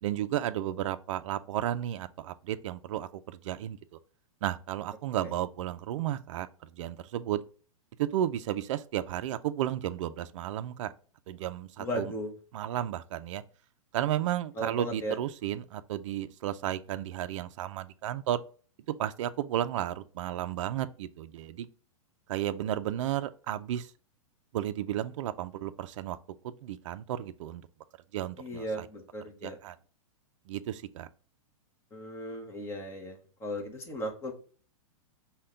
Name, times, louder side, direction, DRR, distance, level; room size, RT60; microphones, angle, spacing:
voice 1, 0.0-3.8 4.4-7.4 8.0-10.9 11.3-12.1 12.5-13.4 13.9-18.4 19.0-21.7 22.3-23.9 24.5-26.2 26.4-27.6 28.1-28.9 29.4-29.8 30.5-31.1, right 12 dB, 60° right, 0.4 m, -33 dB
voice 2, 11.8-12.3 14.5-15.2 28.4-29.6 31.9-34.3, equal, 15° left, 0.9 m, -36 dB
5.6 x 2.2 x 3.7 m
hypercardioid pair, 150°, 18 cm